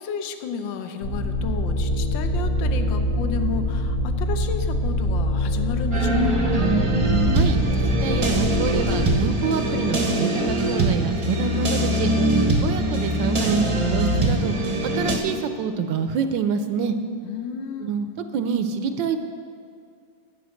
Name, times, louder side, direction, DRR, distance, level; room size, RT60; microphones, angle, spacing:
voice 1, 0.0-6.5 17.2-17.9, left 7 dB, 70° left, 8 dB, 1.4 m, -32 dB
sound 1, 1.0-9.2, left 1 dB, 85° left, 2.5 m, -24 dB
Soul Beat, 5.9-15.2, right 1 dB, 25° right, 0.6 m, -22 dB
voice 2, 7.3-12.1 12.6-14.5 14.8-17.0 17.8-19.2, right 6 dB, 70° right, 8 dB, 1.2 m, -27 dB
11.0 x 8.6 x 6.4 m, 2.3 s
omnidirectional pair, 2.3 m